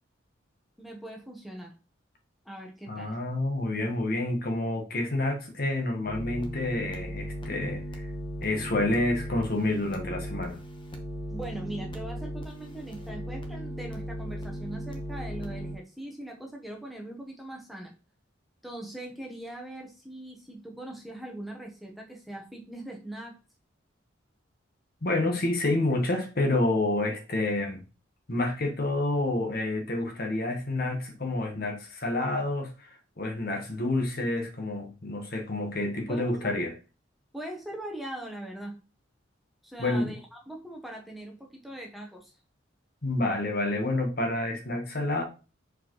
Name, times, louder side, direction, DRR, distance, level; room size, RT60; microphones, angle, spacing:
voice 1, 0.8-1.7 2.4-3.2 11.3-17.9 18.6-23.4 36.1-36.7 37.3-38.8 39.6-42.3, right 1 dB, ahead, 1.0 m, -41 dB
voice 2, 2.9-8.1 8.4-10.6 25.0-27.8 28.3-36.7 39.8-40.1 43.0-45.2, left 2 dB, 50° left, 1.2 m, -28 dB
sound 1, 6.1-15.7, equal, 25° left, 1.0 m, -37 dB
6.8 x 4.7 x 3.0 m
head